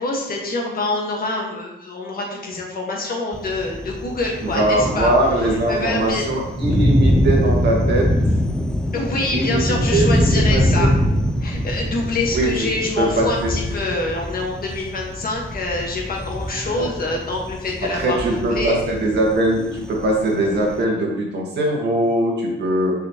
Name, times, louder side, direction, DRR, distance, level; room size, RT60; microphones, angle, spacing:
voice 1, 0.0-5.1 5.4-6.2 8.9-11.0 11.4-18.8, left 2 dB, 45° left, -1 dB, 1.7 m, -26 dB
Thunder, 3.3-20.8, equal, 5° left, 0.4 m, -23 dB
voice 2, 4.5-8.1 9.3-10.1 10.3-10.9 12.3-12.7 13.0-13.5 16.6-16.9 17.8-22.9, right 1 dB, 60° right, -1 dB, 1.8 m, -21 dB
5.9 x 5.6 x 3.1 m, 0.91 s
cardioid pair, 90°, 20 cm